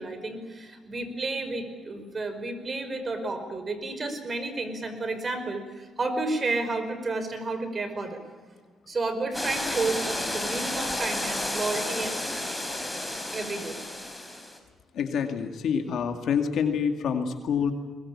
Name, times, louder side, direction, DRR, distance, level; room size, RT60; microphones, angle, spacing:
voice 1, 0.0-8.2 8.9-12.1 13.3-13.8, right 3 dB, 35° right, 9 dB, 5.0 m, -31 dB
sound 1, 9.3-14.6, left 1 dB, 5° left, 5.0 m, -32 dB
voice 2, 14.9-17.7, left 7 dB, 70° left, 5 dB, 2.3 m, -27 dB
22.5 x 21.0 x 8.8 m, 1.5 s
cardioid pair, 90°, 0 cm